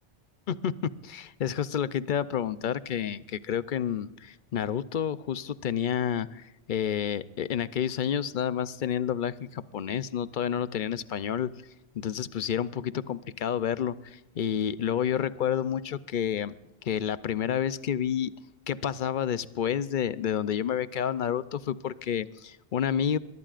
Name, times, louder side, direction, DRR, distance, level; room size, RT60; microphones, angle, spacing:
voice 1, 1.0-11.5 11.9-16.5 16.8-18.3 18.7-23.2, left 9 dB, 55° left, 15 dB, 0.7 m, -29 dB
23.0 x 20.5 x 2.5 m, 1.0 s
omnidirectional pair, 1.1 m